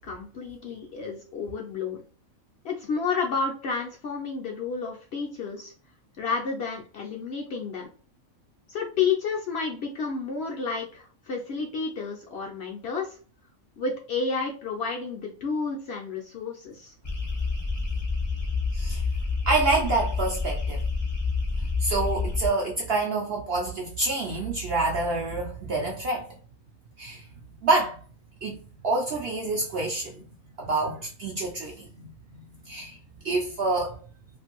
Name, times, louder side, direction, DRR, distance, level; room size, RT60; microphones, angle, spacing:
voice 1, 0.0-2.0 2.6-5.7 6.2-7.9 8.7-13.2 13.8-16.9, left 5 dB, 65° left, 0.6 m, -31 dB
sound 1, 17.0-22.5, left 4 dB, 25° left, 0.4 m, -28 dB
voice 2, 18.7-19.0 19.5-20.8 21.8-26.3 27.0-27.3 27.6-28.0 28.4-30.3 30.6-33.0 33.2-34.0, right 3 dB, 65° right, 0.6 m, -27 dB
2.5 x 2.5 x 2.8 m
omnidirectional pair, 1.5 m